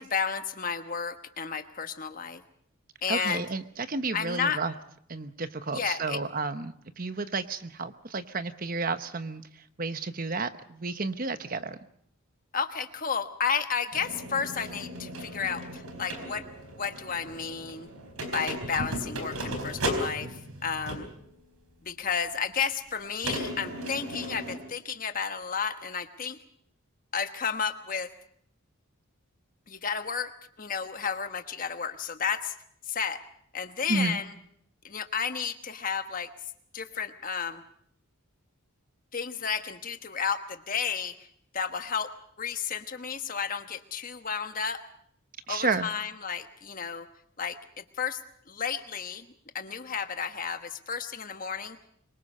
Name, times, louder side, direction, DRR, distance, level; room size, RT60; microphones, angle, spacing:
voice 1, 0.0-2.4 3.0-3.5 4.1-4.6 5.7-6.2 12.5-16.5 16.8-17.9 18.3-21.1 21.8-26.4 27.1-28.1 29.7-32.5 32.9-33.2 33.5-34.3 34.8-36.3 36.7-37.6 39.1-41.3 41.5-42.1 42.4-44.8 45.5-47.1 47.4-48.2 48.5-51.8, left 6 dB, 40° left, 8 dB, 1.2 m, -32 dB
voice 2, 3.1-3.6 3.9-4.7 5.1-9.4 9.8-11.8 33.9-34.2 45.5-45.9, right 3 dB, 40° right, 11 dB, 1.0 m, -31 dB
sound 1, 13.9-21.2 22.1-22.2 23.2-24.6, equal, 85° right, 4.4 m, -36 dB
25.5 x 23.0 x 5.5 m, 0.66 s
head